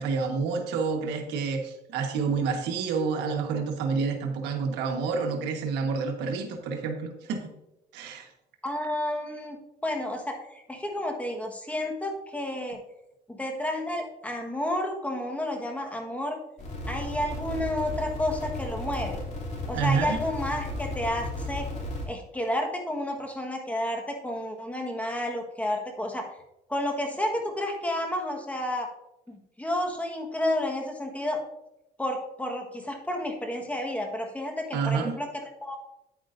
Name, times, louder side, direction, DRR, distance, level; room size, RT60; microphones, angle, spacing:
voice 1, 0.0-7.5 7.9-8.3 19.7-20.2 34.7-35.1, right 5 dB, 90° right, 4 dB, 1.4 m, -28 dB
voice 2, 8.6-9.6 9.8-12.8 13.3-16.4 16.9-19.2 19.7-21.7 22.1-26.2 26.7-28.9 29.3-31.4 32.0-35.8, left 1 dB, 10° left, 2 dB, 1.4 m, -31 dB
sound 1, 16.6-22.1, left 1 dB, 45° left, 2.9 m, -34 dB
9.5 x 8.6 x 2.6 m, 0.88 s
cardioid pair, 110°, 17 cm